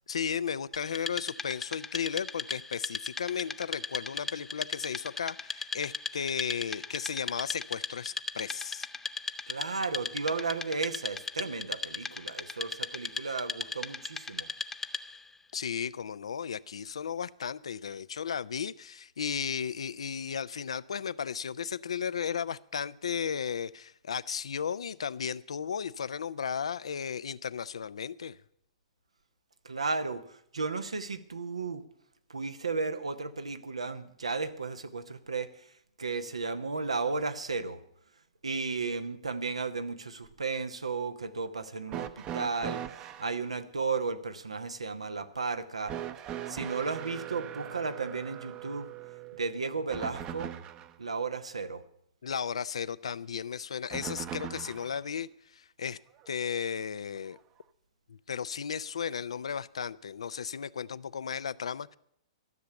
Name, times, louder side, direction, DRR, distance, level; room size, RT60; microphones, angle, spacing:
voice 1, 0.1-8.9 15.5-28.4 52.2-56.0 56.3-57.4 58.1-62.0, left 7 dB, 75° left, 17 dB, 0.5 m, -35 dB
Wood, 0.7-15.3, left 4 dB, 10° left, 0.5 m, -38 dB
voice 2, 9.5-14.5 29.6-31.8 32.3-35.6 36.0-37.8 38.4-45.9 46.5-48.9 49.4-50.5 51.0-51.8, right 4 dB, 85° right, 10 dB, 1.0 m, -34 dB
sound 1, 41.9-43.3 45.9-51.0 53.9-55.0 56.2-56.3 57.4-57.5, right 10 dB, 30° right, 0.8 m, -40 dB
13.5 x 6.9 x 9.8 m, 0.72 s
figure-of-eight pair, 115°, 3 cm